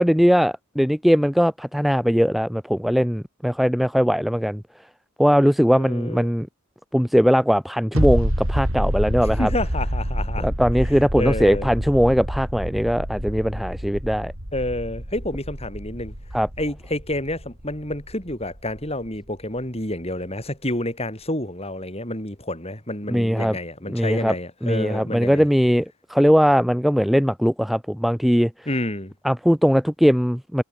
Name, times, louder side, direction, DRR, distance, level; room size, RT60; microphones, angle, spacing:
voice 1, 0.0-4.6 5.2-6.5 6.9-9.5 10.4-14.3 16.3-16.5 23.1-23.6 23.9-24.3 24.6-28.5 29.2-30.6, equal, ahead, 0.9 m, -20 dB
voice 2, 5.7-6.4 9.4-10.5 11.2-11.7 14.5-16.1 16.6-25.4 28.7-29.1, left 1 dB, 25° left, 7.8 m, -29 dB
sound 1, 7.9-19.3 19.6-19.7, equal, 65° right, 6.3 m, -28 dB
head